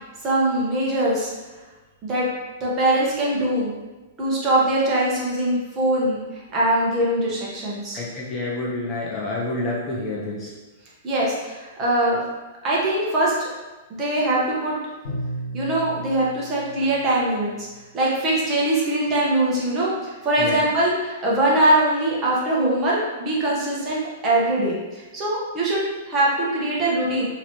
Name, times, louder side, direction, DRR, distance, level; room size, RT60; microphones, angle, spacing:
voice 1, 0.2-1.3 2.0-2.3 2.6-3.7 4.2-8.0 11.0-12.2 12.6-13.5 13.9-14.7 15.5-17.7 17.9-27.2, right 1 dB, 20° right, -5 dB, 1.0 m, -22 dB
voice 2, 7.9-10.5 20.4-20.6, left 2 dB, 20° left, -4 dB, 0.6 m, -28 dB
Bowed string instrument, 15.0-17.9, right 1 dB, 80° left, 1.5 m, -35 dB
3.0 x 2.9 x 4.2 m, 1.2 s
supercardioid pair, 160°, 0 cm